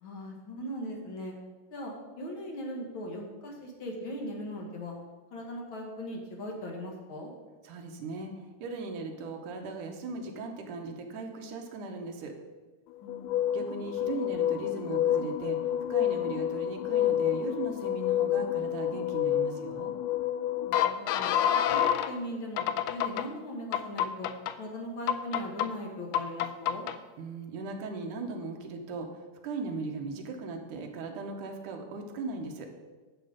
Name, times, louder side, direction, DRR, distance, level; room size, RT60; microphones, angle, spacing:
voice 1, 0.0-1.3 1.7-5.0 5.3-7.3 13.0-13.4 20.6-21.3 21.7-24.3 24.6-26.9, equal, 50° left, 0 dB, 1.8 m, -39 dB
voice 2, 7.6-12.3 13.5-19.9 27.2-32.7, right 3 dB, 70° right, 3 dB, 2.4 m, -38 dB
sound 1, 13.1-22.1 22.6-23.3 23.7-24.5 25.1-25.7 26.1-27.0, left 10 dB, 80° left, 2.0 m, -28 dB
11.0 x 7.0 x 5.0 m, 1.3 s
omnidirectional pair, 3.9 m